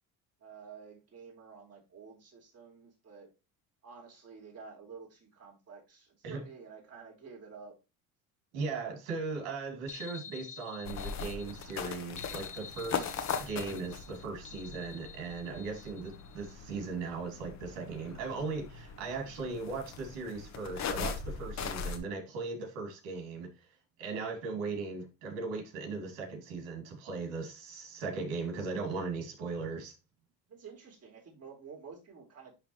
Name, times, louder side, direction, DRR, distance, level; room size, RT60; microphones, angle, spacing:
voice 1, 0.4-3.3 3.8-7.7 15.4-15.7 30.5-32.5, right 5 dB, 40° right, 3.8 m, -50 dB
voice 2, 8.5-23.5 24.0-29.9, right 4 dB, 85° right, 2.9 m, -38 dB
sound 1, 9.9-16.5, left 7 dB, 20° left, 0.6 m, -49 dB
sound 2, 10.9-22.0, left 6 dB, 45° left, 1.3 m, -40 dB
11.0 x 3.7 x 3.2 m
supercardioid pair, 95°, 37 cm